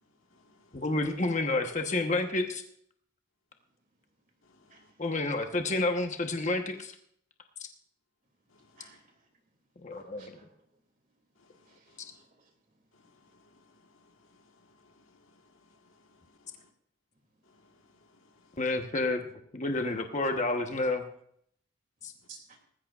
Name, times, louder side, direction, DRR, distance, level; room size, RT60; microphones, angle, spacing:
voice 1, 0.0-1.0 4.4-4.9 8.5-9.0 9.9-10.0 11.3-12.3 12.9-16.7 17.4-18.8, left 3 dB, 80° left, 1.6 m, -64 dB
voice 2, 0.7-2.6 5.0-6.9 9.8-10.3 18.6-19.3 19.5-21.0 22.0-22.1, left 2 dB, 35° left, 1.1 m, -29 dB
voice 3, 4.7-5.0 8.8-9.3 10.0-10.7 11.6-12.8 22.3-22.6, right 4 dB, 40° right, 2.7 m, -56 dB
19.0 x 15.0 x 2.5 m
head